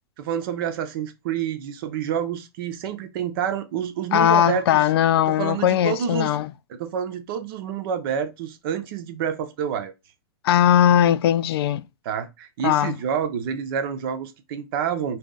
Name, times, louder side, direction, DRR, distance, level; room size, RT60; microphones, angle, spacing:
voice 1, 0.2-4.8 5.3-6.4 6.7-9.9 12.0-15.2, right 8 dB, 55° right, 0.8 m, -28 dB
voice 2, 4.1-6.5 10.4-11.8 12.6-13.0, left 10 dB, 60° left, 0.4 m, -19 dB
4.1 x 2.6 x 3.7 m
hypercardioid pair, 115°, 14 cm